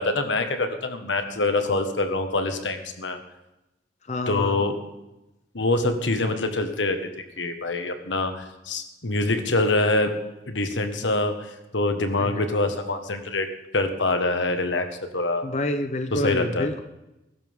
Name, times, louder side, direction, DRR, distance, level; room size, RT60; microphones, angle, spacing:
voice 1, 0.0-3.2 4.3-4.8 5.5-7.1 7.4-10.1 10.5-13.5 13.7-14.9 15.1-15.4 16.1-16.7, left 2 dB, 85° left, 7 dB, 1.5 m, -25 dB
voice 2, 4.1-4.6 12.2-12.4 15.4-16.8, left 1 dB, 40° left, 8 dB, 0.7 m, -28 dB
21.0 x 12.0 x 3.7 m, 0.95 s
head